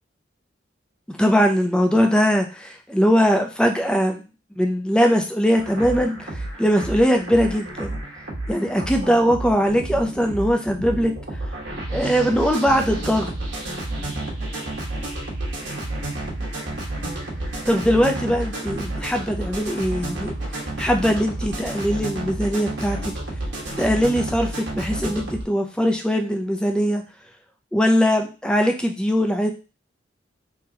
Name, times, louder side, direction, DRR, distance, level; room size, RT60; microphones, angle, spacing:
voice 1, 1.1-4.2 4.6-8.0 8.5-11.1 11.9-13.3 17.7-20.3 20.8-23.1 23.8-27.0 27.7-29.5, equal, 5° left, 3 dB, 0.4 m, -21 dB
sound 1, 5.6-25.4, right 1 dB, 65° right, 1.2 m, -30 dB
3.8 x 2.8 x 2.7 m, 0.32 s
head